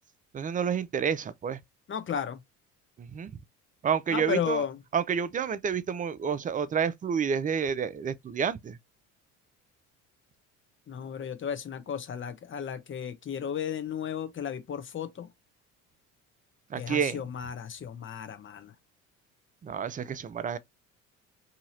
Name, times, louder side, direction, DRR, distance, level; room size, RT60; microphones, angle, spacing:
voice 1, 0.3-1.6 3.0-3.3 3.8-4.6 4.9-8.8 16.7-17.2 19.6-20.6, right 7 dB, 20° right, 0.4 m, -29 dB
voice 2, 1.9-2.4 4.1-4.8 10.9-15.3 16.8-18.7, left 8 dB, 30° left, 0.8 m, -34 dB
2.8 x 2.7 x 2.7 m
hypercardioid pair, 65°, 38 cm